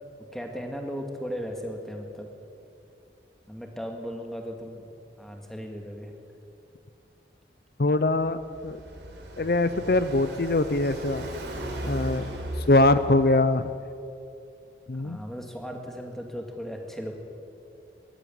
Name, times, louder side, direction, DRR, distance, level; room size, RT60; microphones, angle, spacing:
voice 1, 0.3-2.3 3.5-4.9 5.2-6.1 14.9-17.1, equal, ahead, 2 dB, 2.0 m, -36 dB
voice 2, 7.8-8.4 8.6-8.8 9.4-11.3 11.8-12.2 12.7-13.7 14.9-15.2, left 2 dB, 55° left, 12 dB, 0.6 m, -22 dB
Car passing by, 8.1-13.6, right 1 dB, 90° right, 4.0 m, -37 dB
21.0 x 13.0 x 9.4 m, 2.7 s
head